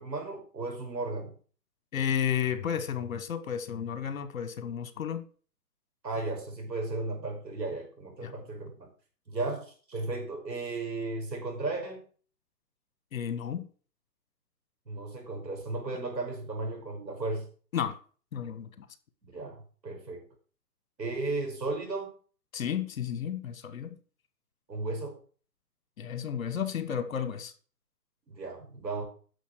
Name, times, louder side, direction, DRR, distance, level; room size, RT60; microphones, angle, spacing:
voice 1, 0.0-1.3 6.0-8.9 9.3-12.0 14.9-17.5 19.2-19.5 19.8-20.2 21.0-22.1 24.7-25.2 28.3-29.0, right 3 dB, 90° right, 6.0 m, -35 dB
voice 2, 1.9-5.3 8.2-8.3 13.1-13.7 17.7-18.0 18.3-18.8 22.5-23.9 26.0-27.5, left 8 dB, 55° left, 1.5 m, -32 dB
10.0 x 6.9 x 6.3 m
hypercardioid pair, 155°, 49 cm